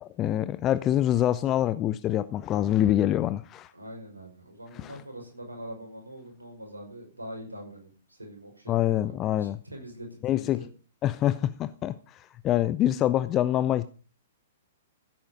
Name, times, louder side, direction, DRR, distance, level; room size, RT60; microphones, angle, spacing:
voice 1, 0.0-3.7 4.7-5.0 8.7-9.6 10.2-10.7 11.0-13.9, left 12 dB, 25° left, 0.6 m, -25 dB
voice 2, 3.7-10.7, equal, 80° right, 5.5 m, -43 dB
15.5 x 8.9 x 5.1 m
figure-of-eight pair, 110°, 0 cm